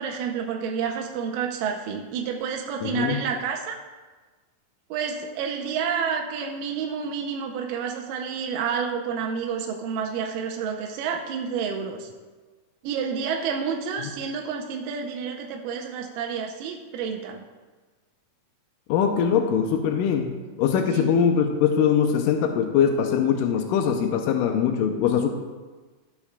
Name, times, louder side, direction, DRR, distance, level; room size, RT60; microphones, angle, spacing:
voice 1, 0.0-3.8 4.9-12.1 12.8-17.4 20.9-21.1, right 6 dB, 85° right, 2 dB, 2.2 m, -29 dB
voice 2, 2.8-3.2 18.9-20.3 20.6-25.3, left 7 dB, 80° left, 4 dB, 2.1 m, -22 dB
14.0 x 7.1 x 2.2 m, 1.3 s
omnidirectional pair, 4.0 m